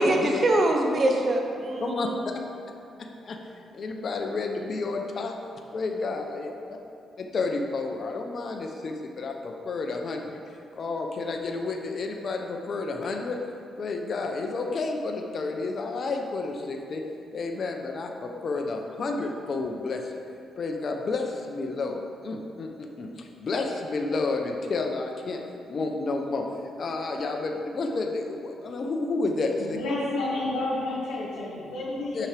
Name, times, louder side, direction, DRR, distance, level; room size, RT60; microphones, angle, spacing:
voice 1, 0.0-2.1, right 1 dB, 45° right, 2 dB, 0.9 m, -23 dB
voice 2, 3.7-5.3 5.7-6.8 7.2-10.4 10.7-13.4 13.8-17.0 17.3-20.2 20.6-25.4 25.7-26.4 26.8-29.8 32.1-32.3, left 3 dB, 50° left, 2 dB, 0.7 m, -30 dB
voice 3, 29.7-32.2, left 2 dB, 90° left, -8 dB, 1.6 m, -30 dB
8.4 x 6.0 x 3.4 m, 2.5 s
cardioid pair, 75°, 0 cm